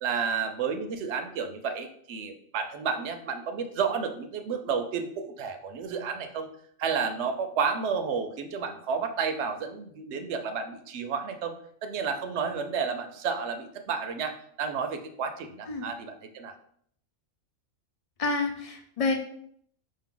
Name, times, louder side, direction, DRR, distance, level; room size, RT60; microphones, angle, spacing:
voice 1, 0.0-6.5 6.8-16.5, right 6 dB, 65° right, 7 dB, 0.8 m, -31 dB
voice 2, 18.2-19.1, left 3 dB, 60° left, 4 dB, 0.3 m, -28 dB
5.2 x 2.7 x 3.7 m, 0.64 s
omnidirectional pair, 1.4 m